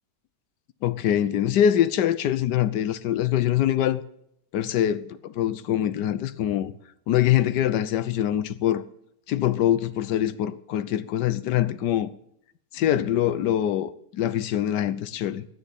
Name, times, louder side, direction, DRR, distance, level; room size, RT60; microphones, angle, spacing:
voice 1, 0.8-4.0 4.5-6.7 7.1-8.8 9.3-12.1 12.7-15.5, left 11 dB, 85° left, 1.3 m, -24 dB
10.5 x 9.3 x 9.1 m
omnidirectional pair, 1.8 m